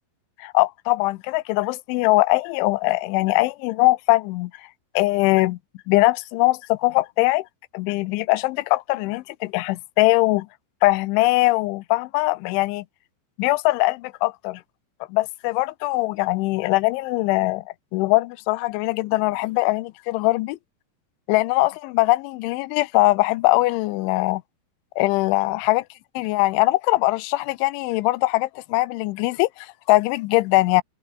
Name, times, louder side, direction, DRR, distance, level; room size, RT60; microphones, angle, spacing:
voice 1, 0.4-4.5 5.0-5.6 5.9-7.5 7.7-10.5 10.8-12.8 13.4-14.6 15.1-17.6 17.9-20.6 21.3-24.4 25.0-25.8 26.2-30.8, left 21 dB, 85° left, 3.2 m, -21 dB
omnidirectional pair, 5.3 m